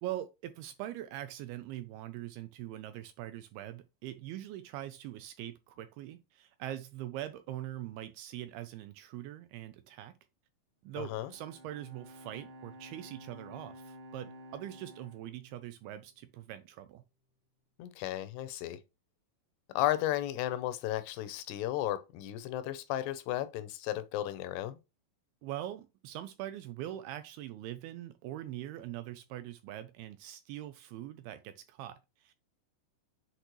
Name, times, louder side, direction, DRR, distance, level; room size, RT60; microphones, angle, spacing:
voice 1, 0.0-10.1 10.8-17.0 25.4-32.3, right 13 dB, 85° right, 2.3 m, -42 dB
Bowed string instrument, 10.9-16.3, equal, 55° right, 2.4 m, -52 dB
voice 2, 11.0-11.3 17.8-18.8 19.8-24.8, left 14 dB, 80° left, 2.6 m, -34 dB
8.0 x 4.2 x 3.0 m
omnidirectional pair, 4.9 m